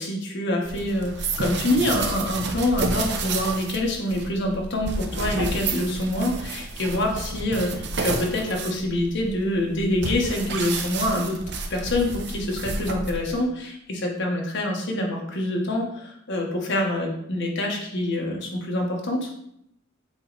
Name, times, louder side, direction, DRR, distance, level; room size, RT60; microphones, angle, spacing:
voice 1, 0.0-11.4 11.7-19.3, left 1 dB, 60° left, 0 dB, 1.3 m, -26 dB
sound 1, 0.6-13.4, right 3 dB, 60° right, 0.7 m, -31 dB
7.7 x 3.2 x 4.0 m, 0.75 s
head